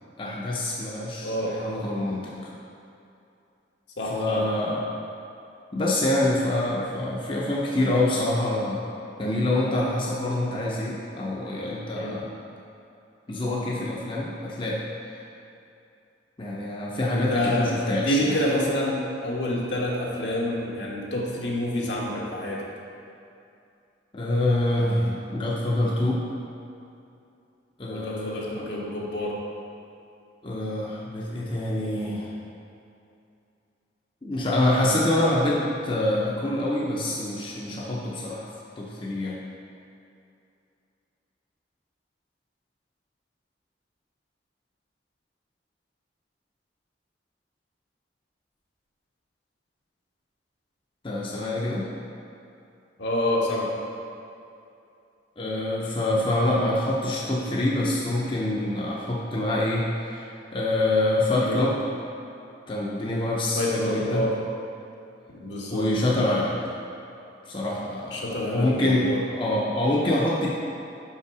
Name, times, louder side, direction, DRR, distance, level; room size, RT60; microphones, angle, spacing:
voice 1, 0.2-2.4 4.1-4.9 5.7-8.9 9.2-12.3 13.3-14.8 16.4-18.4 24.1-26.2 27.8-28.6 30.4-32.3 34.2-38.5 38.8-39.4 51.0-51.9 55.4-61.8 62.7-64.3 65.7-66.6 67.5-69.1 69.3-70.5, left 1 dB, 25° left, -4 dB, 0.6 m, -26 dB
voice 2, 1.2-1.6 4.0-4.4 11.9-12.2 17.1-22.6 27.9-29.3 53.0-53.7 61.4-61.6 63.5-64.3 65.4-65.9 68.1-69.2, left 1 dB, 75° left, -4 dB, 1.2 m, -27 dB
5.9 x 5.5 x 4.7 m, 2.6 s
head